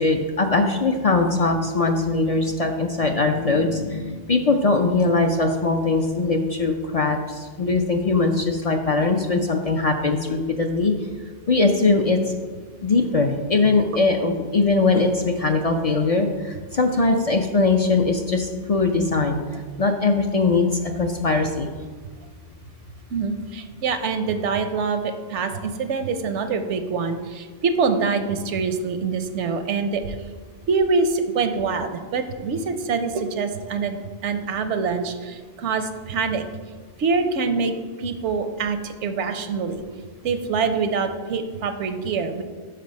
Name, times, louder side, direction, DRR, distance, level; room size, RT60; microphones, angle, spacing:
voice 1, 0.0-10.9 11.5-12.2 12.8-19.4 19.8-21.7, left 3 dB, 45° left, 4 dB, 0.5 m, -21 dB
voice 2, 23.1-30.2 30.7-36.4 37.0-37.7 38.0-39.8 40.2-42.4, right 4 dB, 75° right, 8 dB, 1.0 m, -25 dB
6.7 x 5.9 x 5.2 m, 1.5 s
omnidirectional pair, 1.2 m